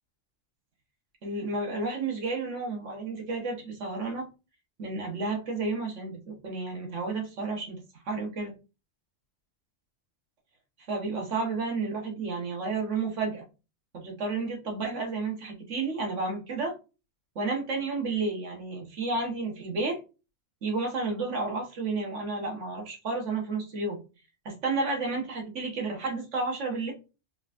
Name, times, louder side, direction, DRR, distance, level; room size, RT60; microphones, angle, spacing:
voice 1, 1.2-4.3 4.8-7.8 8.0-8.5 10.9-13.4 13.9-16.7 17.3-20.0 20.6-24.0 24.4-26.9, right 3 dB, 75° right, 1 dB, 1.5 m, -31 dB
3.8 x 3.5 x 2.5 m, 0.31 s
omnidirectional pair, 1.3 m